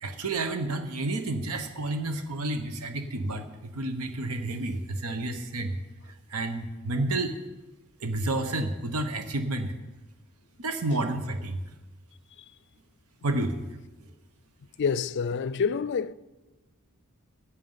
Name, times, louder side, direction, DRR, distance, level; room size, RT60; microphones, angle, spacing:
voice 1, 0.0-5.8 6.1-7.4 8.0-9.7 10.6-11.6 13.2-13.6, right 2 dB, 90° right, 1.0 m, -30 dB
voice 2, 14.8-16.1, left 6 dB, 55° left, 0.4 m, -27 dB
14.5 x 8.4 x 5.6 m
head